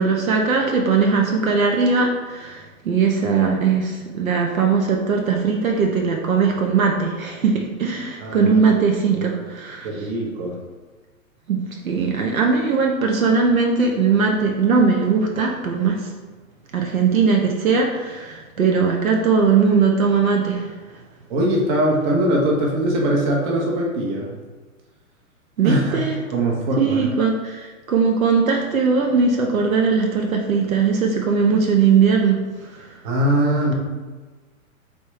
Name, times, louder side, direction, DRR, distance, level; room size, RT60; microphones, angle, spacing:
voice 1, 0.0-10.1 11.5-16.1 16.7-20.7 25.6-26.2 26.8-32.4 32.7-32.9, right 5 dB, 75° right, 1 dB, 0.7 m, -19 dB
voice 2, 8.2-8.5 9.8-10.6 21.3-24.3 25.6-26.0 26.3-27.0 33.0-33.7, right 1 dB, 35° right, -2 dB, 1.0 m, -21 dB
4.1 x 3.5 x 3.1 m, 1.3 s
figure-of-eight pair, 110°, 42 cm